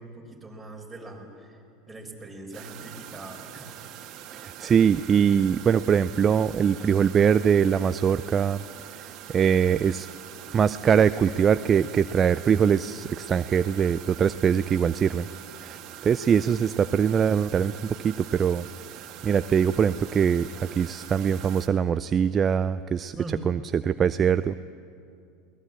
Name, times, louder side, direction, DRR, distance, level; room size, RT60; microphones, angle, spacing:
voice 1, 0.0-3.7 23.1-23.4, right 2 dB, 10° right, 0 dB, 4.6 m, -42 dB
sound 1, 2.5-21.7, right 11 dB, 50° right, 1.9 m, -43 dB
voice 2, 4.3-8.6 8.9-10.1 10.5-15.3 15.6-18.7 19.2-23.2 23.5-24.6, right 7 dB, 30° right, 13 dB, 0.5 m, -23 dB
22.0 x 18.5 x 8.4 m, 2.5 s
hypercardioid pair, 95°, 0 cm